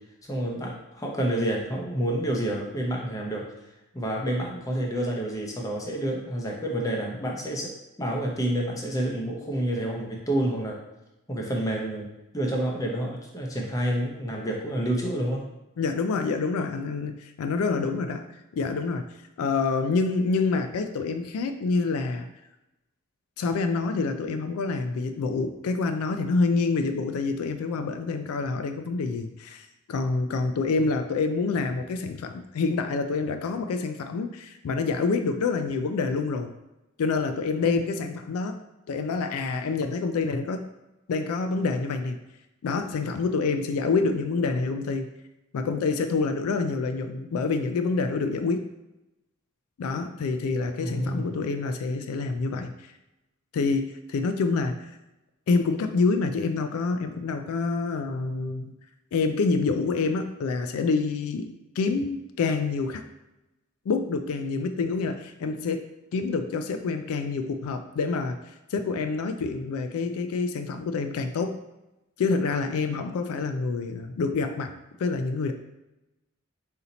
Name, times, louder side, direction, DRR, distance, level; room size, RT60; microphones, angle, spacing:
voice 1, 0.3-3.5 3.9-7.7 8.0-10.8 11.3-12.1 12.3-15.4 50.8-51.4, right 1 dB, 15° left, -1 dB, 0.6 m, -28 dB
voice 2, 15.8-18.3 18.5-19.1 19.4-22.3 23.4-36.5 37.0-38.6 38.9-40.6 41.1-42.2 42.6-45.1 45.5-48.7 49.8-52.7 53.5-54.8 55.5-58.7 59.1-63.0 63.9-65.8 66.1-68.4 68.7-71.6 72.2-74.7 75.0-75.5, left 4 dB, 80° left, 7 dB, 0.3 m, -27 dB
4.1 x 2.8 x 4.0 m, 0.96 s
head